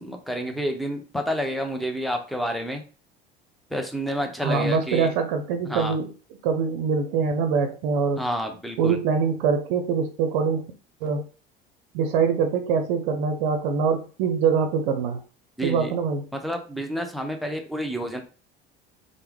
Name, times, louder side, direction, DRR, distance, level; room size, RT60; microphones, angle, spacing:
voice 1, 0.0-2.8 3.7-5.1 5.6-6.0 8.2-9.0 15.6-15.9 16.4-18.2, equal, ahead, 4 dB, 0.6 m, -29 dB
voice 2, 4.4-6.1 6.4-8.2 8.8-10.7 11.0-11.2 11.9-15.2 15.6-16.2, right 5 dB, 60° right, 7 dB, 0.5 m, -24 dB
3.3 x 2.0 x 3.1 m, 0.35 s
figure-of-eight pair, 65°, 29 cm